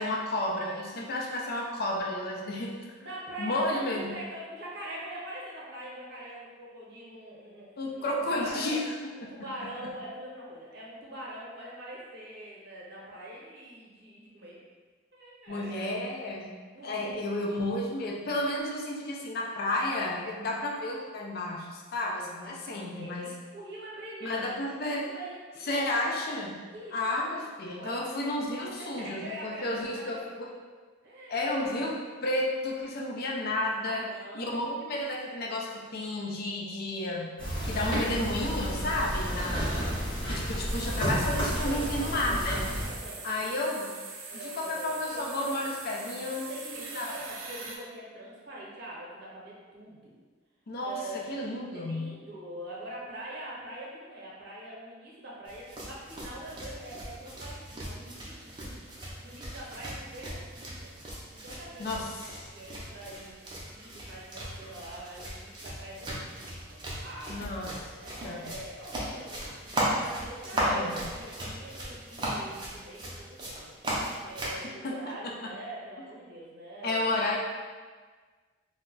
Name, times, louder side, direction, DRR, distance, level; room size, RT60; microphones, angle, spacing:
voice 1, 0.0-2.7 3.4-4.1 7.8-8.9 9.2-9.3 15.5-16.6 16.8-23.3 24.2-25.1 25.7-26.6 26.9-30.5 31.3-34.1 34.3-37.3 37.6-39.7 40.3-42.7 43.2-43.9 44.3-46.4 47.0-47.3 50.7-52.2 61.8-62.5 67.3-67.8 68.2-68.5 70.5-71.0 74.8-75.0 75.2-75.3 76.8-77.4, left 1 dB, 50° left, -1 dB, 0.4 m, -32 dB
voice 2, 3.0-8.8 9.1-14.6 15.1-15.9 16.7-17.2 22.8-26.2 26.7-27.0 27.3-27.5 27.8-28.2 28.8-30.6 31.0-31.4 33.8-34.7 39.3-39.9 41.6-42.3 42.8-43.3 44.3-45.7 46.2-50.2 50.8-58.7 59.0-60.9 61.3-62.2 62.5-63.4 63.7-67.5 68.0-77.1, right 1 dB, 55° right, -5 dB, 0.8 m, -44 dB
sound 1, 37.4-42.9, equal, 25° left, 0.9 m, -31 dB
sound 2, 40.7-47.8, right 4 dB, 80° right, 0.4 m, -43 dB
sound 3, 55.5-74.6, right 1 dB, 25° right, 0.5 m, -37 dB
2.2 x 2.1 x 3.7 m, 1.5 s
head